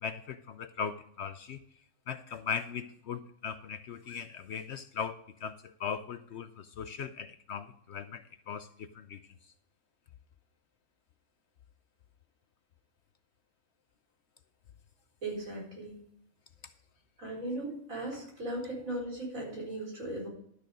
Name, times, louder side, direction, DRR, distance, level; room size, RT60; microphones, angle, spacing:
voice 1, 0.0-1.6 2.1-5.5 5.8-9.2, left 6 dB, 65° left, 11 dB, 0.7 m, -39 dB
voice 2, 15.2-15.9 17.2-20.3, right 1 dB, 75° right, -3 dB, 4.9 m, -37 dB
12.5 x 6.7 x 5.1 m, 0.67 s
omnidirectional pair, 1.4 m